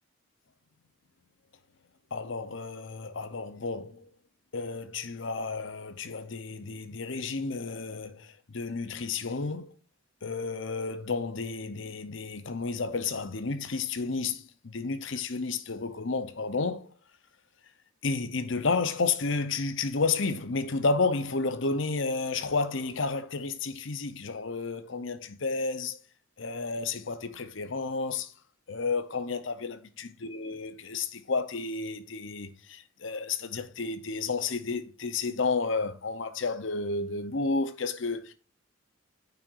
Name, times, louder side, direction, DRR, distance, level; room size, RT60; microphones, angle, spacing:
voice 1, 2.1-4.1 4.5-9.7 10.2-16.9 18.0-26.0 26.4-28.3 28.7-38.3, left 4 dB, 60° left, 0.8 m, -31 dB
9.0 x 5.9 x 2.6 m
head